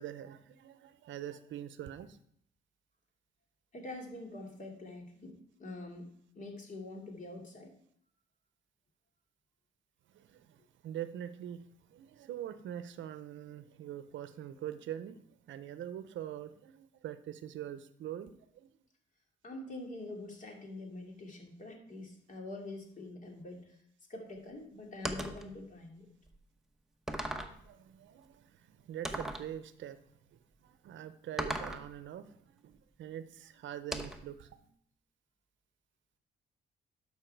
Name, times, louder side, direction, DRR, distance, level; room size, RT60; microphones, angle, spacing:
voice 1, 0.0-2.2 10.1-18.7 27.5-30.0 30.3-34.6, right 11 dB, 70° right, 12 dB, 0.7 m, -44 dB
voice 2, 3.7-7.7 19.4-23.8 24.1-26.1, left 2 dB, 40° left, 1 dB, 2.8 m, -45 dB
sound 1, 25.0-25.5 26.3-26.4 27.1-27.6 29.0-29.5 31.4-31.9 33.9-34.3, right 1 dB, ahead, 1.0 m, -37 dB
12.0 x 5.7 x 4.6 m, 0.66 s
cardioid pair, 90°, 20 cm